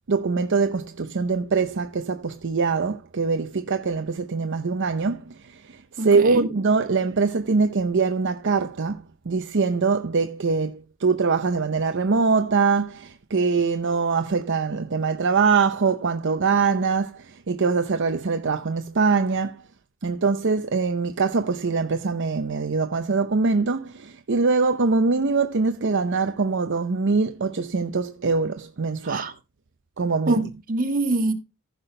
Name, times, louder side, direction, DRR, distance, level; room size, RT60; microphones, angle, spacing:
voice 1, 0.1-19.6 20.0-29.3 30.0-30.4, right 4 dB, 60° right, 0.7 m, -23 dB
voice 2, 6.0-6.5 29.0-29.3 30.3-31.3, right 2 dB, 40° right, 1.6 m, -25 dB
15.5 x 5.9 x 3.3 m
head